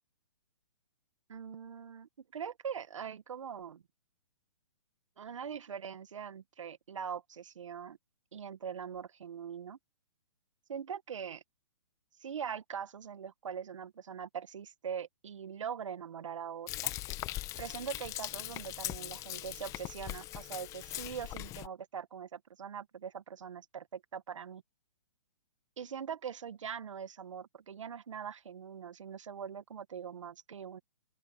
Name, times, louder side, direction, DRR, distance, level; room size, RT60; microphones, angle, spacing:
voice 1, 1.3-3.8 5.2-8.0 8.3-9.8 10.7-11.4 12.2-16.9 17.6-24.6 25.8-30.8, right 7 dB, 75° right, 1.8 m, -42 dB
Frying (food), 16.7-21.7, left 16 dB, 20° left, 1.1 m, -40 dB
open air
hypercardioid pair, 155°, 16 cm